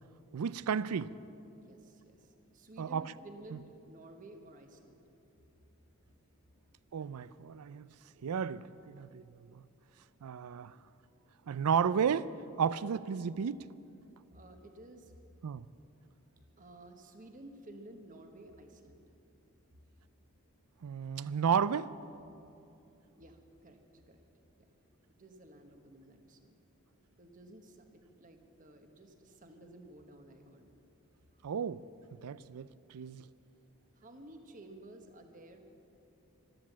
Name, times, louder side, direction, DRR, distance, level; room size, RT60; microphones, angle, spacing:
voice 1, 0.3-1.1 2.8-3.1 6.9-7.9 8.2-9.6 10.2-10.8 11.5-12.3 12.6-13.6 15.4-15.7 20.8-21.9 31.4-31.8 32.2-33.2, right 7 dB, 90° right, 0.4 m, -33 dB
voice 2, 1.6-5.0 14.3-15.1 16.6-19.0 23.1-23.8 24.1-24.3 24.6-24.7 25.2-26.6 27.2-30.7 31.3-31.7 33.9-35.7, right 1 dB, 35° right, 1.2 m, -54 dB
13.5 x 12.5 x 7.4 m
head